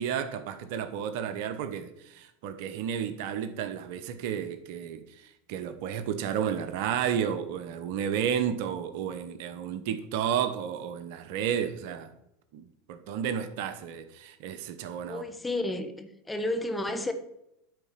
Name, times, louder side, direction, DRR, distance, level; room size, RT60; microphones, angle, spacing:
voice 1, 0.0-5.0 5.5-12.1 12.5-15.3, right 8 dB, 65° right, 1.0 m, -32 dB
voice 2, 15.0-17.1, left 1 dB, 10° left, 1.2 m, -32 dB
9.6 x 4.3 x 7.4 m
hypercardioid pair, 100°, 0 cm